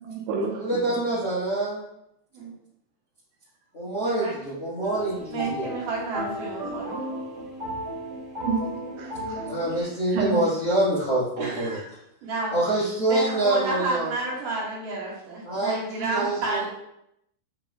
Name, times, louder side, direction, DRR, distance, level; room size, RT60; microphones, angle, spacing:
voice 1, 0.0-1.0 8.4-8.6 9.0-9.4 9.7-10.4, right 4 dB, 80° right, -1 dB, 3.0 m, -30 dB
voice 2, 0.6-1.8 3.7-5.7 9.4-11.8 12.5-14.1 15.4-16.6, right 1 dB, 75° left, -10 dB, 1.3 m, -26 dB
voice 3, 4.0-4.3 5.3-7.0 11.4-11.8 12.2-12.5 12.9-16.7, right 3 dB, 60° right, -7 dB, 2.5 m, -30 dB
sound 1, 4.8-9.8, right 1 dB, 40° right, 1.5 m, -34 dB
8.7 x 5.3 x 2.3 m, 0.80 s
omnidirectional pair, 5.6 m